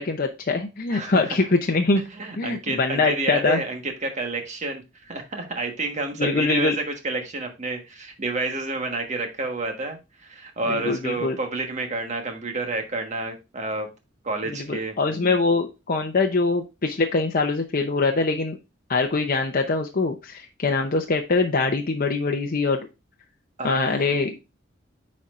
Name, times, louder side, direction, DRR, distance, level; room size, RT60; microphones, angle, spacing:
voice 1, 0.0-2.0 2.4-3.6 6.2-6.8 10.7-11.4 14.5-18.6 18.9-22.8 23.6-24.3, left 3 dB, 45° left, 3 dB, 0.7 m, -23 dB
voice 2, 0.9-1.5 2.2-13.9 14.2-15.4 23.6-24.2, right 2 dB, 35° right, 4 dB, 1.3 m, -30 dB
9.4 x 4.3 x 2.4 m, 0.26 s
head